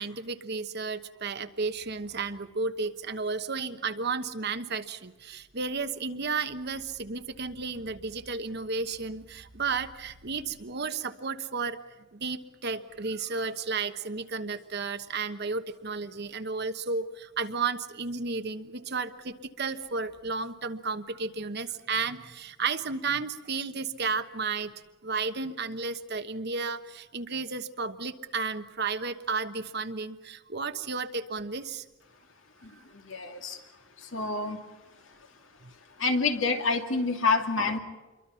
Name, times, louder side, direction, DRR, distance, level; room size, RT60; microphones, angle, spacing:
voice 1, 0.0-11.8 12.1-24.7 25.0-31.8, right 4 dB, 55° right, 9 dB, 1.2 m, -33 dB
voice 2, 32.6-33.6 34.0-34.6 36.0-37.8, left 4 dB, 70° left, 4 dB, 2.5 m, -28 dB
27.5 x 23.0 x 5.8 m, 1.1 s
head